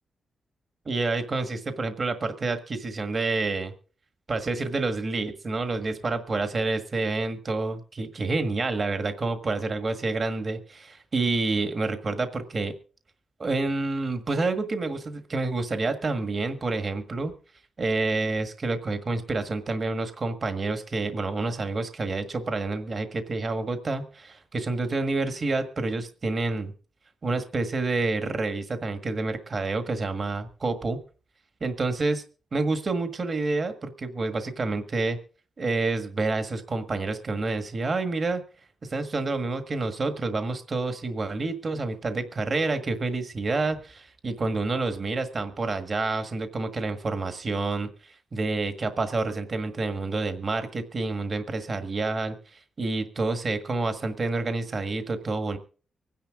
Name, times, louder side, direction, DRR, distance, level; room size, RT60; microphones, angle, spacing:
voice 1, 0.8-3.7 4.3-12.7 13.4-17.3 17.8-26.7 27.2-31.0 31.6-32.2 32.5-35.2 35.6-38.4 38.8-55.6, right 3 dB, 40° right, 8 dB, 1.6 m, -28 dB
24.5 x 10.5 x 3.7 m, 0.40 s
cardioid pair, 105°, 0 cm